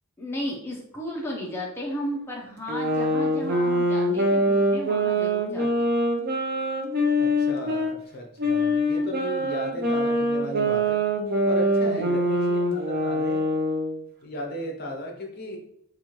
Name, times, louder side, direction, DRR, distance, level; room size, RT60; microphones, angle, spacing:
voice 1, 0.2-5.9 11.8-12.3, equal, 10° left, -3 dB, 0.6 m, -34 dB
sound 1, 2.7-7.9 8.4-14.0, equal, 45° right, 0.6 m, -24 dB
voice 2, 7.2-11.0 11.4-13.4 14.2-15.6, left 1 dB, 45° left, 2 dB, 0.7 m, -36 dB
4.2 x 2.5 x 3.0 m, 0.75 s
head